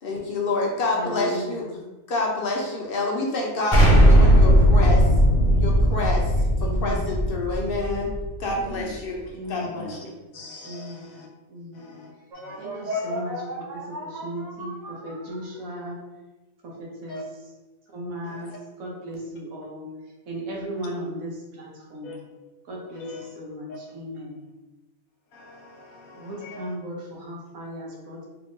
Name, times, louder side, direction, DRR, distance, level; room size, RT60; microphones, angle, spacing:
voice 1, 0.0-5.1 5.6-8.1 8.4-9.2 9.5-10.1, left 3 dB, 60° left, -1 dB, 0.6 m, -28 dB
voice 2, 0.9-1.5 6.6-7.0 9.3-9.7 10.6-11.1 11.5-11.9 12.6-13.4 13.7-13.8 14.1-16.0 16.6-16.7 17.0-17.2 17.9-18.5 18.8-19.9 20.3-22.1 22.7-24.4 26.1-28.3, equal, 75° right, -2 dB, 1.3 m, -36 dB
Explosion, 3.7-8.5, equal, 5° right, 1.2 m, -17 dB
voice 3, 10.3-11.3 11.7-12.1 12.4-13.2 17.1-17.2 18.2-18.5 22.0-22.2 22.9-23.3 23.7-23.8 25.3-26.8, left 2 dB, 75° left, 0 dB, 1.1 m, -42 dB
sound 1, 12.3-15.8, left 1 dB, 55° right, 0.4 m, -34 dB
3.4 x 2.5 x 3.6 m, 1.1 s
omnidirectional pair, 1.5 m